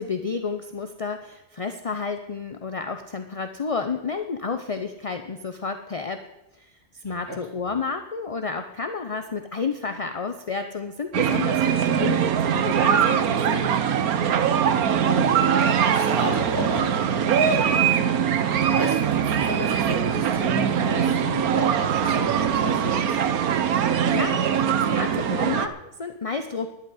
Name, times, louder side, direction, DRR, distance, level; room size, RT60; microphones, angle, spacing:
voice 1, 0.0-6.2 6.5-13.7 23.8-26.7, left 4 dB, 35° left, 7 dB, 0.6 m, -31 dB
sound 1, 11.1-25.7, right 8 dB, 75° right, 1.3 m, -22 dB
voice 2, 14.7-15.4 15.9-18.0 18.7-23.2, equal, 15° right, -3 dB, 4.3 m, -32 dB
11.5 x 8.3 x 9.7 m, 0.92 s
omnidirectional pair, 1.6 m